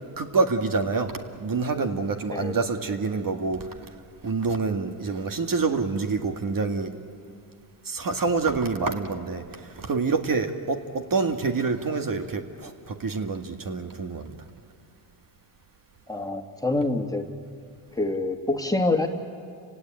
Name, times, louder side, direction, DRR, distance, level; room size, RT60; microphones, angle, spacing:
voice 1, 0.2-3.7 4.2-6.9 7.8-14.4, right 4 dB, 40° right, 5 dB, 2.0 m, -27 dB
voice 2, 16.1-17.3 18.0-19.1, left 2 dB, 5° left, 4 dB, 2.1 m, -26 dB
29.5 x 17.5 x 8.9 m, 2.3 s
supercardioid pair, 75°, 49 cm